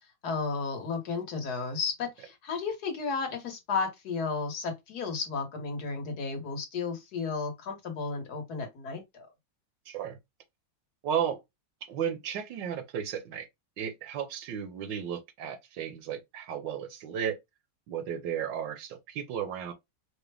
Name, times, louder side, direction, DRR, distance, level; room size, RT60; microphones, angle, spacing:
voice 1, 0.2-9.3, left 4 dB, 60° left, 1.7 m, -33 dB
voice 2, 9.9-10.2 11.0-11.4 11.9-13.5 13.8-17.4 17.9-19.7, right 8 dB, 85° right, 1.5 m, -34 dB
4.9 x 2.1 x 3.3 m
omnidirectional pair, 1.9 m